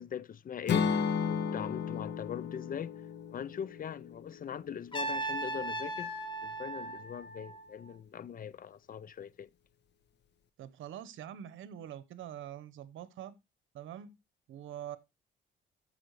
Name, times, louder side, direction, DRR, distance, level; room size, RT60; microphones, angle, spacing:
voice 1, 0.0-3.0 3.3-6.1 6.4-9.5, left 8 dB, 45° left, 0.6 m, -41 dB
Acoustic guitar / Strum, 0.7-4.8, left 6 dB, 60° left, 1.1 m, -34 dB
Trumpet, 4.9-7.9, right 2 dB, 25° left, 2.5 m, -37 dB
voice 2, 10.6-13.3 13.7-14.1 14.5-15.0, right 10 dB, 80° right, 1.0 m, -44 dB
14.5 x 5.6 x 3.1 m
cardioid pair, 90°, 20 cm